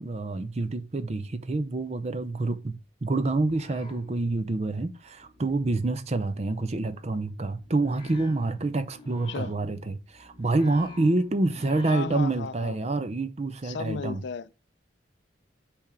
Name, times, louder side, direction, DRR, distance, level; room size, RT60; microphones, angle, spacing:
voice 1, 0.0-14.2, right 2 dB, 35° right, 0.5 m, -27 dB
sound 1, 2.8-4.7 5.0-12.4, left 1 dB, 25° left, 0.9 m, -51 dB
voice 2, 11.9-12.8 13.6-14.6, left 5 dB, 65° left, 0.4 m, -34 dB
5.7 x 3.4 x 4.9 m
head